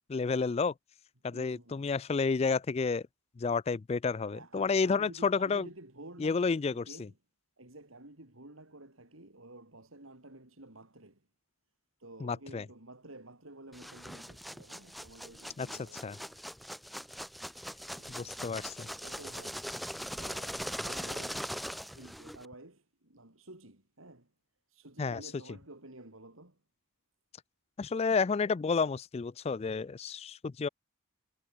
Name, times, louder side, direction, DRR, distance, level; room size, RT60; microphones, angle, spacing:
voice 1, 0.1-0.7 1.2-3.0 3.4-5.7 6.2-6.8 12.2-12.6 15.6-15.7 16.0-16.2 18.1-18.9 25.0-25.2 27.8-30.7, left 4 dB, 30° left, 0.3 m, -30 dB
voice 2, 1.3-1.9 4.3-7.2 7.6-11.3 12.0-16.4 17.9-24.3 24.7-26.6, right 2 dB, 80° right, 4.3 m, -52 dB
sound 1, 13.7-22.5, equal, ahead, 0.9 m, -41 dB
head